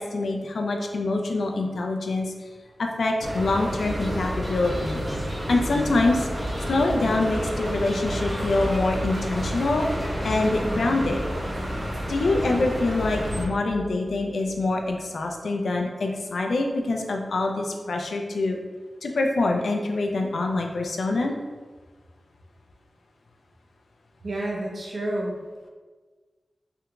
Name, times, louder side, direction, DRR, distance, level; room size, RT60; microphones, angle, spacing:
voice 1, 0.0-2.3 2.8-5.0 5.5-6.3 6.7-9.9 10.2-11.2 12.1-18.6 19.0-21.3, left 2 dB, 85° left, 2 dB, 0.4 m, -25 dB
sound 1, 3.2-13.4, equal, 30° right, 0.9 m, -30 dB
sound 2, 3.8-10.6, right 1 dB, 20° left, 0.6 m, -38 dB
sound 3, 13.0-15.3, equal, 65° left, 0.9 m, -40 dB
voice 2, 24.2-25.4, right 1 dB, 60° right, -3 dB, 0.7 m, -29 dB
3.4 x 2.9 x 2.3 m, 1.4 s
wide cardioid pair, 100°, 0 cm